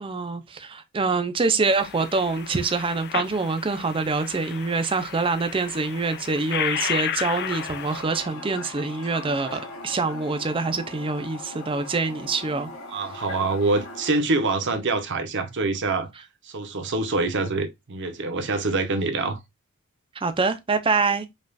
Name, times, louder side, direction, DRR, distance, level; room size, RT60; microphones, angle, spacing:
voice 1, 0.0-12.7 20.2-21.3, right 4 dB, 25° right, 0.5 m, -25 dB
sound 1, 1.7-8.0, left 9 dB, 50° left, 0.4 m, -33 dB
Toilet flush, 7.2-14.2, left 2 dB, 75° left, 1.9 m, -39 dB
voice 2, 12.9-16.1 16.4-19.4, right 3 dB, 55° right, 0.7 m, -25 dB
5.2 x 2.4 x 2.4 m
head